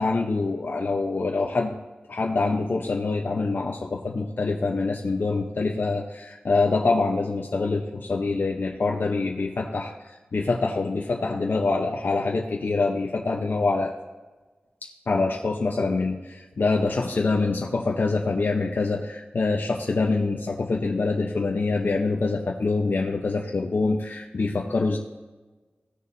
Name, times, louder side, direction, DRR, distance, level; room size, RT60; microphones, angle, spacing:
voice 1, 0.0-1.7 2.1-13.9 15.1-25.0, left 3 dB, 60° left, -1 dB, 0.8 m, -25 dB
16.5 x 6.5 x 2.7 m, 1.2 s
wide cardioid pair, 70°, 4 cm